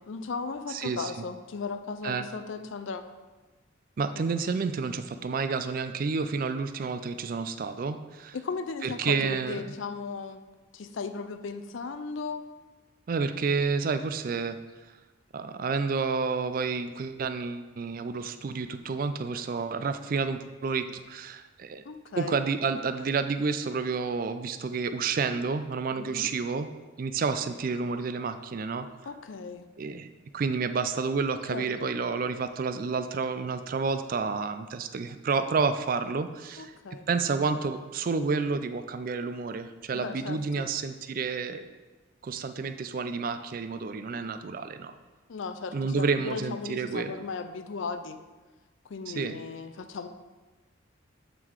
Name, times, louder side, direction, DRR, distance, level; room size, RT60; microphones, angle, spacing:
voice 1, 0.1-3.0 8.3-10.4 10.7-12.5 21.8-22.4 26.0-26.3 29.0-29.7 31.5-31.9 36.6-37.1 39.9-40.7 45.3-48.2 48.8-50.1, left 4 dB, 75° left, 10 dB, 0.5 m, -36 dB
voice 2, 0.7-1.1 2.0-2.3 4.0-8.4 8.8-9.6 13.1-14.6 15.3-21.8 22.2-26.7 27.0-28.9 29.8-30.1 30.3-36.7 37.1-41.6 42.2-44.9 45.7-47.1 49.1-49.3, right 4 dB, 45° right, 10 dB, 0.3 m, -30 dB
8.2 x 3.8 x 4.6 m, 1.3 s
head